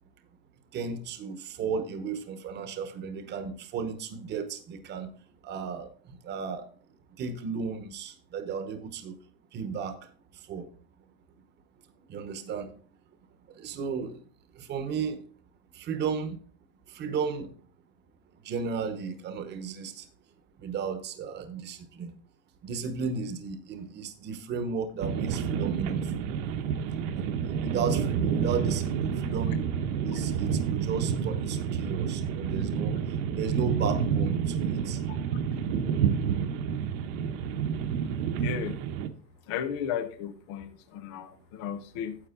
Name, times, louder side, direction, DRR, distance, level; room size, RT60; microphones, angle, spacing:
voice 1, 0.7-5.1 5.4-6.7 7.2-9.2 9.5-10.0 10.5-10.7 12.1-12.7 13.6-14.2 14.6-15.2 15.7-16.4 16.9-17.5 18.4-20.0 20.6-22.1 22.6-26.1 27.2-29.6 30.0-33.0 33.3-35.0, right 5 dB, 20° right, 9 dB, 1.0 m, -34 dB
sound 1, 25.0-39.1, right 7 dB, 50° right, 1.1 m, -29 dB
voice 2, 38.4-38.7 39.5-42.2, left 8 dB, 20° left, 9 dB, 0.3 m, -34 dB
9.7 x 7.8 x 3.8 m, 0.41 s
supercardioid pair, 155°, 48 cm